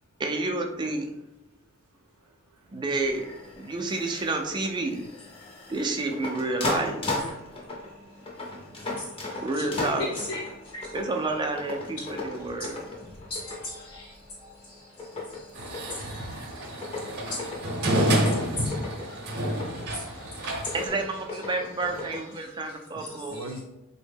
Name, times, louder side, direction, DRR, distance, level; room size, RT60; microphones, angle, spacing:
voice 1, 0.2-1.1 2.7-3.3 3.6-5.0 5.7-7.2 9.4-10.1 10.9-12.8 20.7-23.4, right 2 dB, 20° right, 0.3 m, -29 dB
voice 2, 2.2-2.7 9.1-9.2 15.1-15.4 16.2-16.5 23.3-23.6, right 1 dB, 85° right, 0.4 m, -45 dB
sound 1, 3.0-22.2, left 2 dB, 25° left, 0.6 m, -37 dB
voice 3, 7.9-9.7 10.0-11.0 12.0-12.5 13.1-21.0 21.4-21.6 22.0-23.6, left 2 dB, 75° left, 0.8 m, -41 dB
sound 2, 15.6-20.9, right 1 dB, 50° right, 0.7 m, -29 dB
3.5 x 2.1 x 3.4 m
head